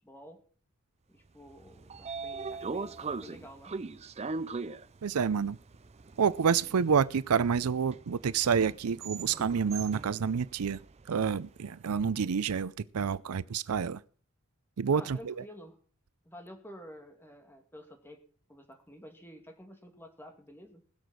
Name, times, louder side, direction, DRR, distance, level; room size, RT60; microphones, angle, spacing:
voice 1, 0.0-0.4 1.1-3.7 14.9-15.8 16.2-18.2 18.5-20.8, equal, 10° left, 2.5 m, -50 dB
Train / Sliding door, 1.5-11.6, right 4 dB, 30° right, 0.5 m, -41 dB
voice 2, 5.0-5.6 6.2-10.8 11.1-14.0 14.8-15.4, right 6 dB, 90° right, 0.5 m, -28 dB
20.0 x 6.9 x 6.3 m
head